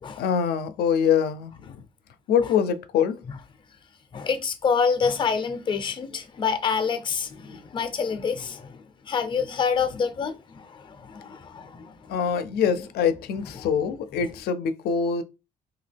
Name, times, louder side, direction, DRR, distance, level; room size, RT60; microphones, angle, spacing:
voice 1, 0.2-1.8 2.3-3.2 12.1-15.2, left 7 dB, 80° left, 0.4 m, -24 dB
voice 2, 4.1-12.4 13.5-13.7, left 6 dB, 30° left, 0.5 m, -27 dB
2.8 x 2.3 x 3.3 m
cardioid pair, 120°, 16 cm